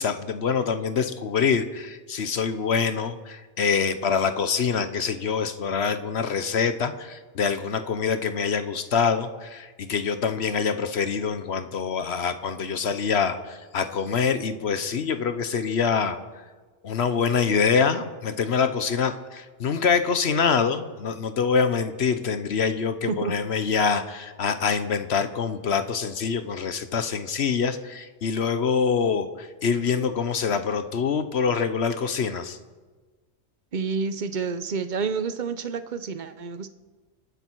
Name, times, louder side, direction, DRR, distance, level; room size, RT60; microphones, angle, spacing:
voice 1, 0.0-16.4 16.8-32.6, left 6 dB, 65° left, 10 dB, 1.1 m, -25 dB
voice 2, 33.7-36.7, right 5 dB, 45° right, 11 dB, 0.9 m, -29 dB
29.5 x 9.8 x 4.6 m, 1.4 s
omnidirectional pair, 1.2 m